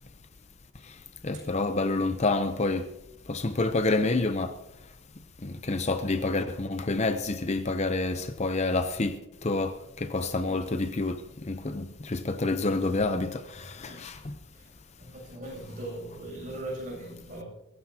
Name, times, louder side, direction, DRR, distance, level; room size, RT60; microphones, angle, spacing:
voice 1, 1.2-2.9 3.3-4.5 5.4-11.2 11.5-14.4, left 2 dB, 35° left, 0.7 m, -28 dB
voice 2, 15.0-17.4, right 1 dB, 40° right, 7.6 m, -39 dB
23.0 x 15.0 x 2.8 m
head